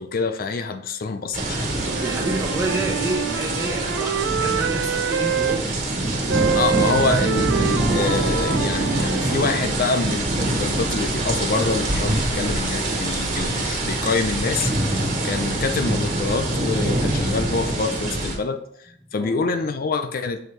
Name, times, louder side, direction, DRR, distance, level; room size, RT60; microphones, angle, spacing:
voice 1, 0.0-1.7 6.6-14.7 15.2-20.4, left 4 dB, 45° left, 8 dB, 0.4 m, -26 dB
sound 1, 1.3-18.3, right 1 dB, 40° right, 1.5 m, -24 dB
Wind instrument woodwind instrument, 1.7-5.6 6.3-9.8, right 7 dB, 65° right, 0.4 m, -26 dB
voice 2, 2.0-5.7 19.0-19.4, right 1 dB, 15° right, -1 dB, 1.1 m, -29 dB
6.9 x 4.6 x 3.2 m, 0.70 s
head